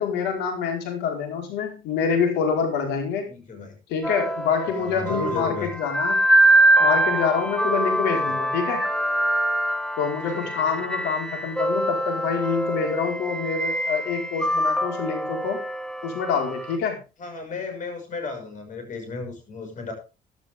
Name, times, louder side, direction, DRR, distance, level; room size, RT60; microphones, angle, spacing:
voice 1, 0.0-3.2 3.9-6.2 6.8-8.9 10.0-15.6 16.0-17.0, left 6 dB, 85° left, 3 dB, 4.6 m, -26 dB
voice 2, 3.2-3.8 4.7-5.7 8.1-8.2 10.2-10.5 17.2-19.9, left 4 dB, 50° left, 5 dB, 6.0 m, -34 dB
sound 1, 4.0-16.8, right 1 dB, 5° left, 1.1 m, -24 dB
14.5 x 11.5 x 3.6 m, 0.31 s
cardioid pair, 110°, 17 cm